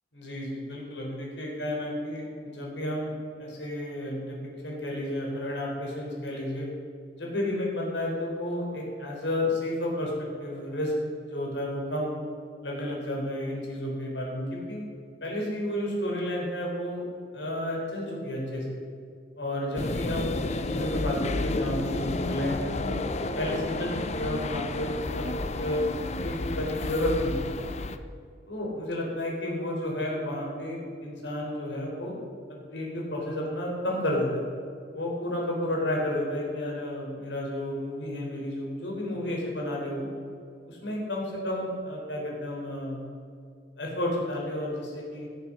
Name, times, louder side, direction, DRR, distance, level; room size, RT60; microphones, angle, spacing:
voice 1, 0.1-3.1 3.4-6.7 7.1-10.9 11.2-12.2 12.6-14.8 15.2-17.0 17.3-18.6 19.4-23.0 23.4-25.9 26.2-27.4 28.5-32.2 32.7-34.4 34.9-40.1 40.7-43.0 43.8-45.3, left 1 dB, 90° left, -2 dB, 3.9 m, -31 dB
sound 1, 19.8-28.0, left 2 dB, 40° left, 0.7 m, -31 dB
16.5 x 7.1 x 6.5 m, 2.4 s
head